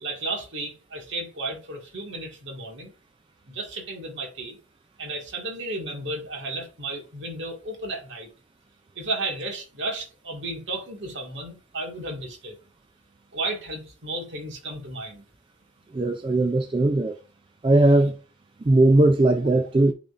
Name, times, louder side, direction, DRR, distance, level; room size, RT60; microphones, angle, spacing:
voice 1, 0.0-2.9 3.5-4.6 5.0-8.3 9.0-12.6 13.3-15.2, right 2 dB, 60° right, 1.8 m, -33 dB
voice 2, 15.9-17.1 17.6-18.2 18.7-19.9, right 2 dB, 25° right, 0.3 m, -19 dB
10.0 x 3.9 x 2.5 m
head